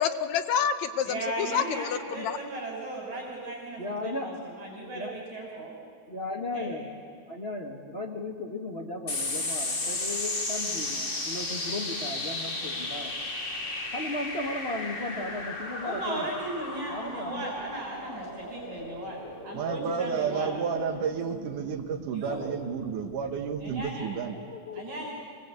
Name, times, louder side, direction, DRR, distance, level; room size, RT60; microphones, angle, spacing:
voice 1, 0.0-2.4, left 8 dB, 75° left, 10 dB, 2.0 m, -28 dB
voice 2, 1.0-5.7 6.5-6.7 15.8-20.5 22.1-22.4 23.6-24.1 24.8-25.1, right 2 dB, 65° right, -1 dB, 5.5 m, -36 dB
voice 3, 3.8-4.3 4.9-5.1 6.1-6.9 7.3-13.1 13.9-16.3 16.9-17.5 24.2-25.1, left 2 dB, 45° left, 1 dB, 0.8 m, -36 dB
sound 1, 9.1-23.9, left 2 dB, 20° left, 1.6 m, -35 dB
voice 4, 19.5-24.4, right 6 dB, 90° right, 4 dB, 2.9 m, -31 dB
25.0 x 20.0 x 8.2 m, 2.2 s
omnidirectional pair, 3.5 m